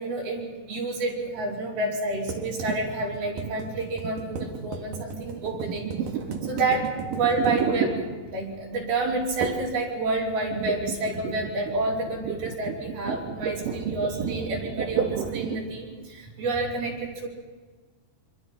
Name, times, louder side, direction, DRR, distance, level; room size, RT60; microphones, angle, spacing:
voice 1, 0.0-5.9 6.5-8.0 8.3-17.3, right 2 dB, 85° right, -4 dB, 6.5 m, -29 dB
sound 1, 2.3-8.6 9.4-9.8 10.0-15.7, right 6 dB, 65° right, 3.3 m, -32 dB
26.0 x 25.5 x 5.8 m, 1.4 s
omnidirectional pair, 4.2 m